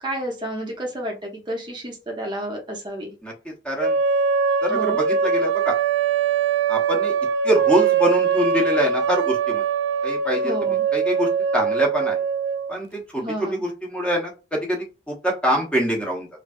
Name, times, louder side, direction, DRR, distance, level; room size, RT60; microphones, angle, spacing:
voice 1, 0.0-3.1 4.7-5.0 10.4-10.8 13.2-13.6, right 1 dB, 25° right, 0 dB, 0.7 m, -31 dB
voice 2, 3.2-4.0 4.6-5.7 6.7-7.1 7.4-9.6 10.0-12.2 12.7-16.3, equal, 5° left, -1 dB, 0.8 m, -25 dB
sound 1, 3.8-12.8, right 6 dB, 65° right, 0.3 m, -22 dB
3.2 x 2.5 x 2.4 m, 0.30 s
head